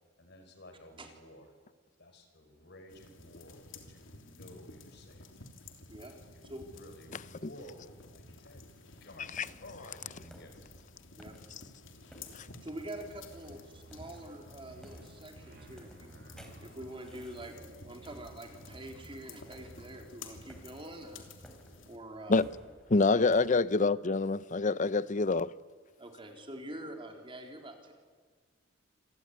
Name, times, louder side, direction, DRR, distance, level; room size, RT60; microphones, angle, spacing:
voice 1, 0.2-1.5 2.0-5.2 6.2-8.6 9.0-9.3 9.6-10.5, left 1 dB, 60° left, 4.8 m, -53 dB
sound 1, 2.9-22.0, left 3 dB, 90° left, 3.2 m, -52 dB
voice 2, 7.1-7.5 9.3-9.5 12.3-12.5 22.3-22.4 22.9-25.5, left 3 dB, 40° left, 0.7 m, -27 dB
sound 2, 9.0-23.7, equal, 5° left, 4.0 m, -58 dB
voice 3, 12.6-16.1 16.6-21.3 21.9-22.5 23.1-23.2 26.0-27.9, right 1 dB, 30° right, 3.9 m, -45 dB
sound 3, 12.8-18.3 18.6-20.0, right 2 dB, 60° right, 3.2 m, -55 dB
27.5 x 21.5 x 9.7 m
head